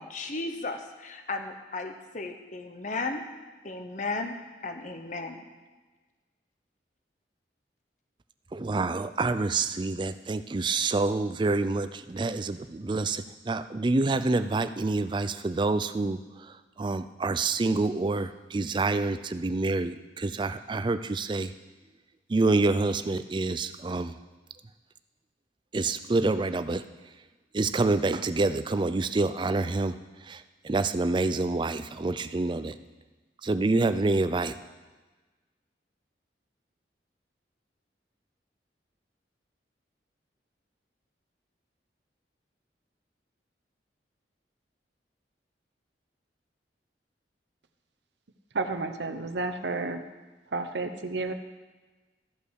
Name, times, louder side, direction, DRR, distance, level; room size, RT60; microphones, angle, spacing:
voice 1, 0.0-3.2 3.6-4.3 4.6-5.4, left 3 dB, 45° left, 6 dB, 1.0 m, -35 dB
voice 2, 8.5-16.2 16.8-21.5 22.3-24.1 25.7-26.8 27.5-30.0 30.2-32.8 33.4-34.5, right 3 dB, 25° right, 12 dB, 0.4 m, -27 dB
voice 3, 48.5-50.0 50.5-51.3, right 3 dB, 80° right, 8 dB, 0.8 m, -31 dB
14.0 x 5.4 x 6.4 m, 1.3 s
head